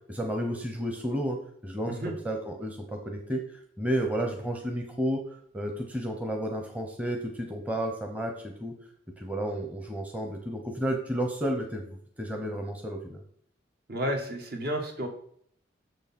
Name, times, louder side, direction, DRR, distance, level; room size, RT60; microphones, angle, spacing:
voice 1, 0.1-1.4 1.6-3.4 3.8-5.2 5.5-8.7 9.2-13.2, equal, 10° right, 2 dB, 0.9 m, -32 dB
voice 2, 13.9-15.1, equal, 55° right, 3 dB, 1.5 m, -31 dB
6.7 x 6.3 x 4.3 m, 0.64 s
head